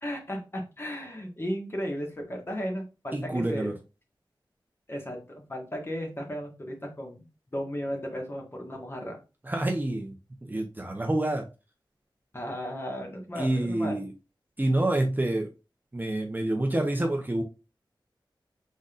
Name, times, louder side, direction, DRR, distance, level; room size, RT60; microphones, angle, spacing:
voice 1, 0.0-3.7 4.9-9.2 12.3-14.1, equal, 30° left, 1 dB, 1.6 m, -35 dB
voice 2, 3.1-3.7 9.5-10.1 10.4-11.4 13.4-14.1 14.6-15.5 15.9-17.4, right 1 dB, 20° right, 2 dB, 0.8 m, -27 dB
5.2 x 4.0 x 2.5 m, 0.29 s
wide cardioid pair, 75°, 9 cm